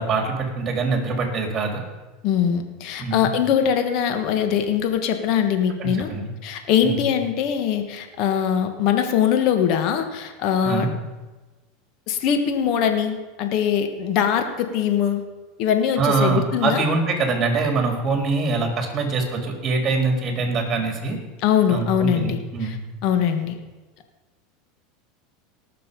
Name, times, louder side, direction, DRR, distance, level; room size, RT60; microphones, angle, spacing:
voice 1, 0.0-1.8 3.0-3.4 5.8-6.3 6.8-7.0 10.6-10.9 16.0-21.2 21.7-22.8, right 4 dB, 30° right, 3 dB, 3.5 m, -24 dB
voice 2, 2.2-6.1 6.4-10.9 12.1-15.2 15.6-16.8 21.4-22.8 23.0-23.5, left 8 dB, 55° left, 6 dB, 1.6 m, -22 dB
18.5 x 6.8 x 5.4 m, 1.2 s
hypercardioid pair, 95°, 0 cm